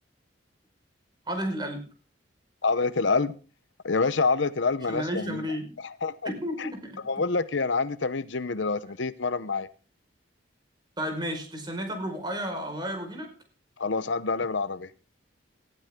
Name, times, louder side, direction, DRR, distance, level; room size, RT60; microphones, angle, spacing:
voice 1, 1.3-1.8 4.9-5.7 6.2-7.0 11.0-13.3, equal, 20° right, 5.0 m, -32 dB
voice 2, 2.6-3.4 3.8-5.4 5.8-6.3 6.6-6.7 7.1-9.7 13.8-14.9, left 4 dB, 70° left, 0.8 m, -27 dB
19.5 x 14.5 x 3.7 m
head